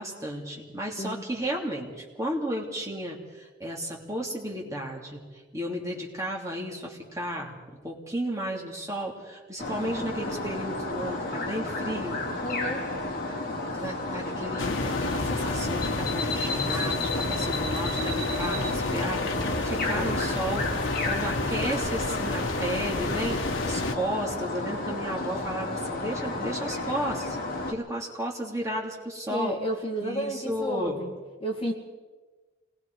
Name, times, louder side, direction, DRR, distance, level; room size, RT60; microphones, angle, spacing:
voice 1, 0.0-5.2 5.5-7.5 7.8-12.2 13.7-27.4 27.7-29.5 30.0-31.0, right 1 dB, 15° right, -1 dB, 2.8 m, -33 dB
sound 1, 9.6-27.7, left 2 dB, 45° left, 2.9 m, -32 dB
voice 2, 12.4-12.9 29.3-31.1 31.4-31.7, equal, 30° left, 0 dB, 2.1 m, -31 dB
sound 2, 14.6-23.9, left 2 dB, 75° left, 1.3 m, -31 dB
27.5 x 20.5 x 4.7 m, 1.3 s
head